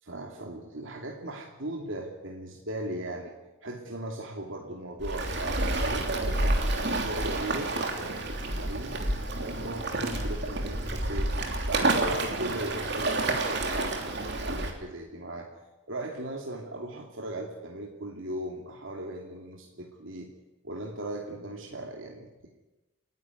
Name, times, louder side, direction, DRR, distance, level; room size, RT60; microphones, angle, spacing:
voice 1, 0.0-3.3 3.6-9.0 9.4-11.3 11.7-15.5 15.9-20.3 20.6-22.3, right 1 dB, 70° right, 0 dB, 2.8 m, -38 dB
Waves surf, 5.0-14.7, right 2 dB, 55° right, 3.2 m, -29 dB
29.5 x 11.0 x 9.6 m, 1.1 s
head